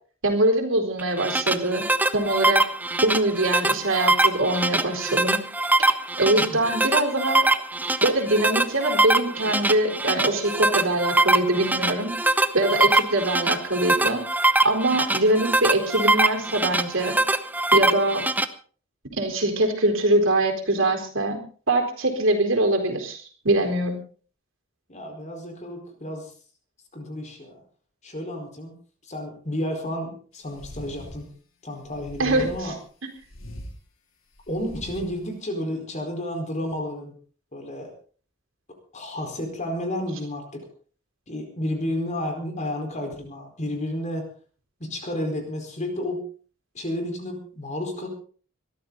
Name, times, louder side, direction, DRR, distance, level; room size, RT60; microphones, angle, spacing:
voice 1, 0.2-1.8 2.1-2.6 3.0-5.4 5.8-7.5 8.0-12.1 12.5-14.2 14.6-17.2 17.7-18.2 19.1-21.4 21.7-24.0 32.2-32.7, right 1 dB, 70° right, 4 dB, 4.2 m, -23 dB
sound 1, 1.0-18.4, right 2 dB, 10° right, 0.9 m, -23 dB
voice 2, 24.9-26.3 26.9-27.6 28.0-28.7 29.0-31.3 31.6-32.8 34.5-37.1 37.5-37.9 38.9-40.7 41.3-44.3 44.8-46.2 46.7-48.1, left 1 dB, 35° left, 3 dB, 4.7 m, -31 dB
sound 2, 30.5-31.3 31.8-32.8 33.2-33.7 34.3-35.2, left 1 dB, 80° left, 3.4 m, -41 dB
22.0 x 13.5 x 4.0 m, 0.42 s
head